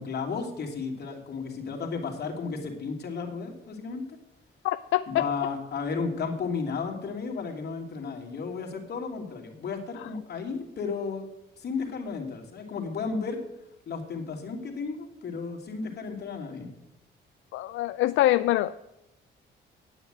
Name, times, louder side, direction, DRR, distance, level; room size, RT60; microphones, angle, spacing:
voice 1, 0.0-4.0 5.1-11.3 11.6-13.4 13.9-16.7, left 5 dB, 55° left, 1 dB, 3.0 m, -33 dB
voice 2, 4.6-5.3 17.5-18.8, left 14 dB, 80° left, 13 dB, 0.4 m, -24 dB
9.6 x 8.9 x 9.0 m, 0.90 s
cardioid pair, 90°, 20 cm